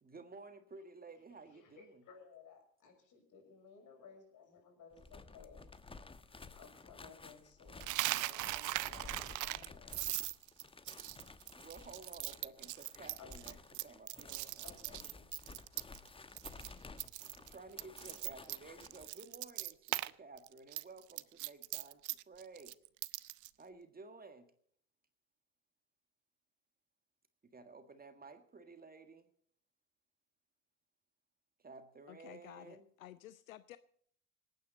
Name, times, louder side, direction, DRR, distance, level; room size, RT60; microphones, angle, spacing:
voice 1, 0.0-2.0 11.5-15.0 17.4-22.8 23.6-24.5 27.4-29.3 31.6-32.9, right 3 dB, 20° right, 9 dB, 1.8 m, -54 dB
voice 2, 1.5-5.6 6.5-10.1 11.5-11.6 12.9-13.6 14.6-15.6, left 6 dB, 50° left, 3 dB, 6.5 m, -59 dB
sound 1, 4.9-19.1, left 3 dB, 15° left, 1.1 m, -54 dB
Coin (dropping), 7.8-16.1 16.4-16.7 17.0-20.1 20.4-23.5, right 18 dB, 50° right, 0.7 m, -40 dB
voice 3, 32.1-33.8, left 14 dB, 80° left, 15 dB, 0.7 m, -53 dB
26.5 x 9.4 x 4.1 m, 0.64 s
hypercardioid pair, 65°, 40 cm